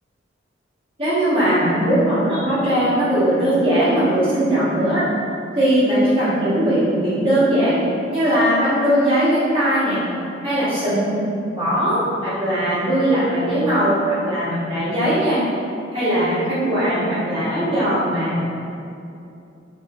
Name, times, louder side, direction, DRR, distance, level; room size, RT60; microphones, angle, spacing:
voice 1, 1.0-5.1 5.5-7.8 8.1-10.0 10.4-11.2 11.5-15.4 15.9-18.4, right 1 dB, 30° right, -11 dB, 1.5 m, -19 dB
4.8 x 3.2 x 2.5 m, 2.7 s
head